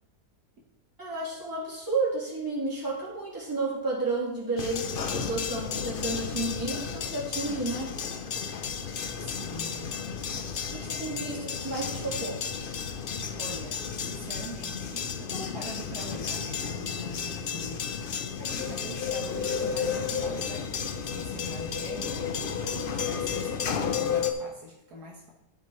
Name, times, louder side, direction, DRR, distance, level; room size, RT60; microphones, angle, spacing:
voice 1, 1.0-7.9 10.7-12.4, right 3 dB, 10° right, -7 dB, 3.1 m, -31 dB
sound 1, 4.6-24.3, left 6 dB, 60° left, 0.5 m, -32 dB
voice 2, 7.5-7.9 9.2-9.9 10.3-11.0 13.4-17.9 18.4-25.3, equal, 65° right, -1 dB, 1.7 m, -44 dB
12.0 x 7.5 x 3.1 m, 0.89 s
omnidirectional pair, 1.8 m